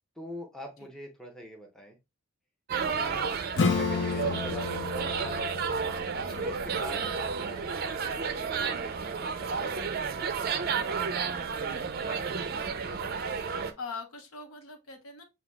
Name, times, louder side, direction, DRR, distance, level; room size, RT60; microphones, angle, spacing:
voice 1, 0.1-2.0 2.9-3.4 3.7-5.6 6.4-10.7, equal, 5° left, 0.8 m, -45 dB
sound 1, 2.7-13.7, right 5 dB, 45° right, 0.4 m, -32 dB
Acoustic guitar / Strum, 3.6-8.8, left 4 dB, 55° left, 0.6 m, -33 dB
voice 2, 11.6-15.2, left 4 dB, 80° left, 0.9 m, -45 dB
6.8 x 2.8 x 2.2 m
head